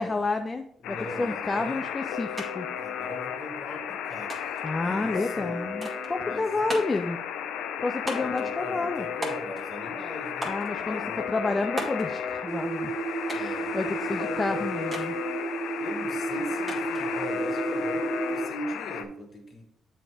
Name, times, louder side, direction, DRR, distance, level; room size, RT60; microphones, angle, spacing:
voice 1, 0.0-2.7 4.6-7.2 7.8-9.1 10.5-12.9 13.3-15.2, left 3 dB, 25° left, 6 dB, 0.4 m, -30 dB
Alarm, 0.8-19.0, left 8 dB, 85° left, 0.4 m, -34 dB
voice 2, 0.8-1.9 2.7-4.6 4.8-5.6 6.2-6.8 8.1-11.2 13.3-14.6 15.8-19.6, equal, 45° left, 0 dB, 1.7 m, -40 dB
sound 1, 2.4-2.5 2.8-3.5 4.3-4.7 5.8-6.1 6.7-7.1 8.1-8.5 9.2-9.8 10.4-10.7 11.8-12.1 13.3-13.6 14.9-15.1 16.7-17.1, right 1 dB, 15° right, 1.7 m, -36 dB
sound 2, 12.5-18.5, right 4 dB, 45° right, 0.6 m, -32 dB
7.5 x 3.4 x 4.8 m, 0.74 s
cardioid pair, 90°, 0 cm